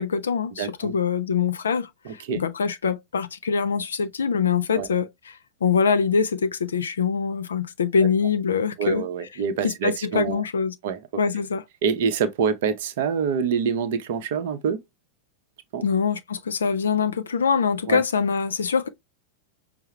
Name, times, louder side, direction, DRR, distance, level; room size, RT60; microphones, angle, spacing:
voice 1, 0.0-9.0 9.6-10.7 11.2-11.6 15.8-18.9, left 6 dB, 70° left, 0.5 m, -24 dB
voice 2, 0.6-1.0 2.0-2.4 4.7-4.9 8.8-10.4 10.8-11.0 11.8-14.8 15.7-15.8 17.9-18.0, right 6 dB, 55° right, 0.6 m, -26 dB
5.6 x 2.0 x 3.0 m
figure-of-eight pair, 90°, 0 cm